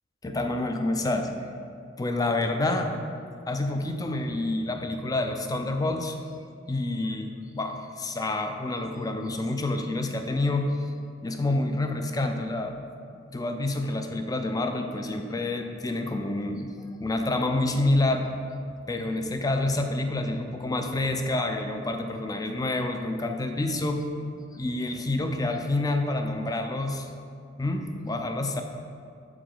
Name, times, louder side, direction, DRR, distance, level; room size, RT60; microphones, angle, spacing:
voice 1, 0.2-1.5 2.0-2.9 3.5-6.2 6.7-10.9 11.2-12.7 13.3-18.3 18.9-24.0 24.5-27.1 27.6-28.6, left 2 dB, 20° left, 5 dB, 0.4 m, -28 dB
7.7 x 4.7 x 3.8 m, 2.4 s
head